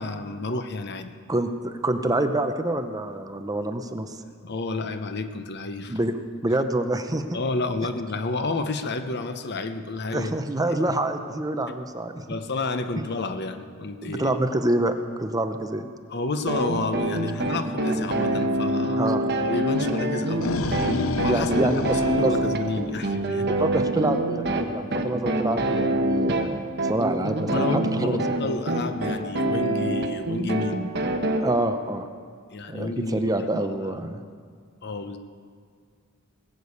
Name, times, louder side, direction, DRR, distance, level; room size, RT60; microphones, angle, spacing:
voice 1, 0.0-1.1 4.4-6.0 7.3-10.3 11.7-11.8 12.3-14.3 16.1-19.1 19.4-23.5 27.5-30.8 32.5-33.9 34.8-35.2, left 3 dB, 55° left, 8 dB, 0.8 m, -30 dB
voice 2, 1.3-4.2 5.9-7.4 10.1-12.2 14.0-14.9 15.2-15.9 19.0-19.2 21.2-22.3 23.4-28.2 31.4-32.1 32.7-34.2, right 1 dB, 20° right, 7 dB, 0.7 m, -26 dB
sound 1, 16.5-31.4, right 1 dB, 55° right, 1.3 m, -26 dB
sound 2, 20.1-23.3, left 3 dB, 80° left, 0.6 m, -29 dB
19.5 x 6.9 x 8.3 m, 2.1 s
head